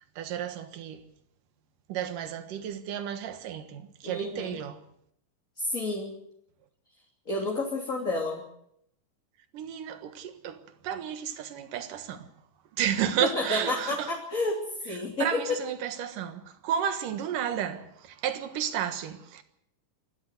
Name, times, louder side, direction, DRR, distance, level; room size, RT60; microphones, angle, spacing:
voice 1, 0.2-1.0 1.9-4.8 9.5-10.6 10.8-12.3 12.8-14.1 15.2-19.4, right 9 dB, 80° right, 3.1 m, -32 dB
voice 2, 4.0-4.6 5.6-6.1 7.3-8.4 13.2-15.6, left 2 dB, 25° left, 3.2 m, -30 dB
27.5 x 12.5 x 8.1 m
omnidirectional pair, 3.8 m